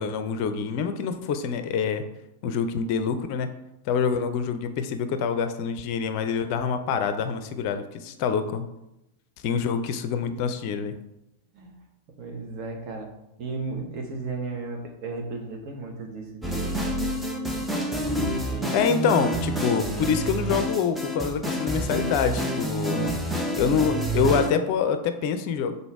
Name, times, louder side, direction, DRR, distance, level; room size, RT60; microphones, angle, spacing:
voice 1, 0.0-2.0 2.4-3.5 3.9-8.7 9.4-11.0 18.7-23.2 23.6-25.8, left 6 dB, 45° left, 9 dB, 0.5 m, -26 dB
voice 2, 12.2-13.1 13.4-16.7 18.5-19.1, right 3 dB, 40° right, 2 dB, 1.3 m, -35 dB
sound 1, 16.4-24.5, right 1 dB, 5° right, 0.8 m, -28 dB
6.9 x 4.0 x 3.5 m, 0.88 s
figure-of-eight pair, 90°, 0 cm